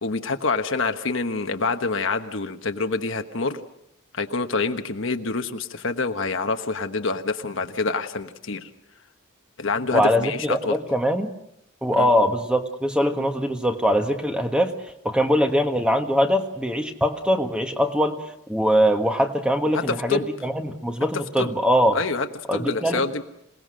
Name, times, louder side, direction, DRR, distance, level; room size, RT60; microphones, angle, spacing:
voice 1, 0.0-3.6 4.1-8.7 9.6-10.8 11.9-12.1 19.7-20.3 21.4-21.5 21.9-23.3, left 3 dB, 60° left, 7 dB, 1.2 m, -26 dB
voice 2, 9.9-11.3 11.8-14.7 15.0-18.2 18.5-22.0 22.5-23.1, equal, 5° right, 5 dB, 1.4 m, -22 dB
27.5 x 19.0 x 6.4 m, 0.80 s
head